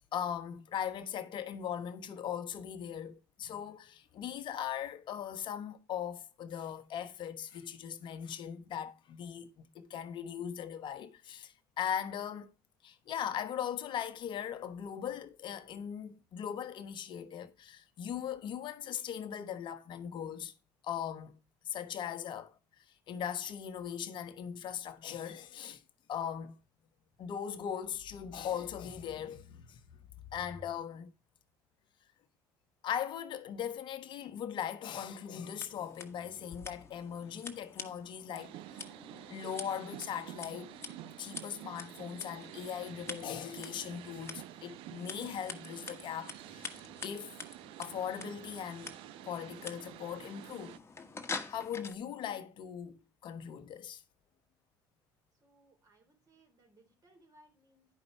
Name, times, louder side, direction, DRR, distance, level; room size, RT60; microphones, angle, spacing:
voice 1, 0.1-12.5 12.8-20.5 20.8-21.4 21.6-25.8 26.1-26.6 27.2-29.8 30.3-31.1 32.8-38.5 39.3-40.8 41.2-46.8 47.0-47.4 47.8-48.9 49.2-50.8 51.5-53.0 53.2-54.0, left 9 dB, 55° left, 1.1 m, -39 dB
Scissors, 35.4-51.9, left 4 dB, 25° left, 1.4 m, -47 dB
sound 1, 38.4-50.8, right 16 dB, 65° right, 0.4 m, -49 dB
voice 2, 55.4-57.9, right 1 dB, 40° right, 3.7 m, -65 dB
10.5 x 5.4 x 4.5 m
hypercardioid pair, 70°, 10 cm